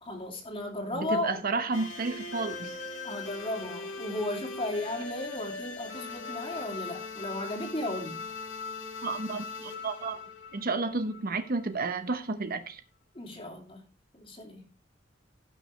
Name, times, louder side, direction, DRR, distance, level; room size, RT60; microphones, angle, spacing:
voice 1, 0.0-1.3 3.0-8.2 13.1-13.8 14.1-14.7, left 1 dB, 30° left, 2.6 m, -35 dB
voice 2, 0.9-2.8 9.0-10.2 10.5-12.8, right 3 dB, 50° right, 0.9 m, -31 dB
sound 1, 1.7-11.6, left 4 dB, 85° left, 2.0 m, -40 dB
16.5 x 6.3 x 3.2 m
head